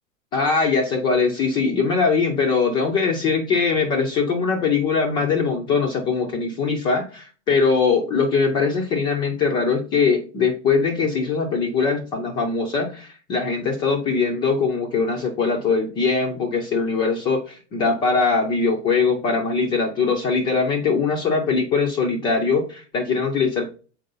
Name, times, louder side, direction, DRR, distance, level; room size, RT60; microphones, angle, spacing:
voice 1, 0.3-23.7, left 4 dB, 15° left, 2 dB, 0.3 m, -21 dB
6.5 x 4.6 x 3.8 m, 0.38 s
supercardioid pair, 160°, 38 cm